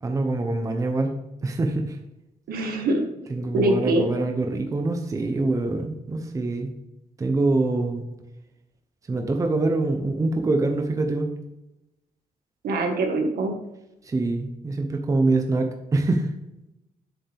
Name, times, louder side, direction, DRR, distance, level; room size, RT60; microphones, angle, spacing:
voice 1, 0.0-1.2 1.4-2.0 3.3-6.7 7.2-8.0 9.1-11.3 14.0-16.3, right 2 dB, 20° right, 4 dB, 0.8 m, -24 dB
voice 2, 2.5-3.0 3.3-4.1 12.6-13.5, right 2 dB, 80° right, 3 dB, 1.7 m, -23 dB
7.6 x 6.9 x 3.5 m, 0.92 s
wide cardioid pair, 175°, 15 cm